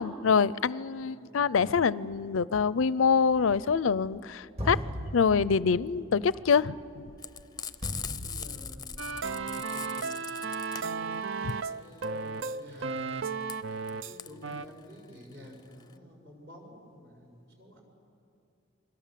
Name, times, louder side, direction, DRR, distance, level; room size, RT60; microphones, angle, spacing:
voice 1, 0.0-4.8 5.1-6.8 11.5-11.6, left 5 dB, 85° left, 19 dB, 0.5 m, -25 dB
voice 2, 1.0-1.4 8.0-10.3 10.7-13.1 13.7-17.8, equal, 55° right, 1 dB, 6.1 m, -51 dB
sound 1, 3.2-4.2 4.6-9.4, equal, 30° right, 2.2 m, -39 dB
Frying (food), 7.2-15.9, left 8 dB, 20° left, 0.6 m, -41 dB
sound 2, 9.0-14.2 14.4-14.7, right 4 dB, 75° right, 0.7 m, -34 dB
28.5 x 22.5 x 7.6 m, 2.6 s
head